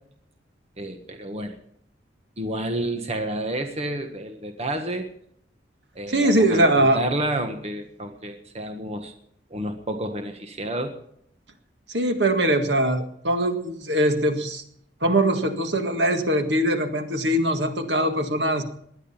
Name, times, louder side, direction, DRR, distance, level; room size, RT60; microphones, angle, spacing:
voice 1, 0.8-1.6 2.4-5.1 5.9-9.1 9.5-10.9, right 1 dB, 35° right, 6 dB, 1.5 m, -30 dB
voice 2, 6.1-7.0 11.9-14.6 15.0-18.6, right 1 dB, 65° right, 7 dB, 1.9 m, -22 dB
19.5 x 11.0 x 5.6 m, 0.68 s
head